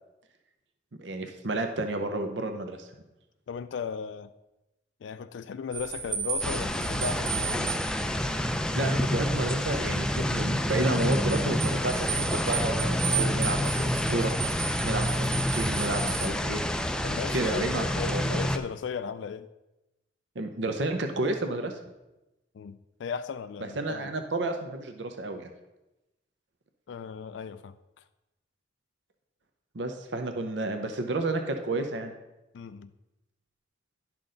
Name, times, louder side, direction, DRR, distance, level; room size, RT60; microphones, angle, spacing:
voice 1, 1.0-2.9 8.8-14.3 14.8-16.6 17.3-18.4 20.4-21.8 23.6-25.5 29.7-32.1, right 2 dB, 70° right, 0.7 m, -31 dB
voice 2, 3.5-4.3 5.0-7.7 17.0-19.5 22.5-24.1 26.9-28.0 32.5-32.9, left 6 dB, 75° left, 0.3 m, -36 dB
sound 1, 5.7-16.3, right 7 dB, 50° right, 1.7 m, -35 dB
sound 2, 6.4-18.6, left 1 dB, 5° left, 0.4 m, -28 dB
10.5 x 6.0 x 3.8 m
head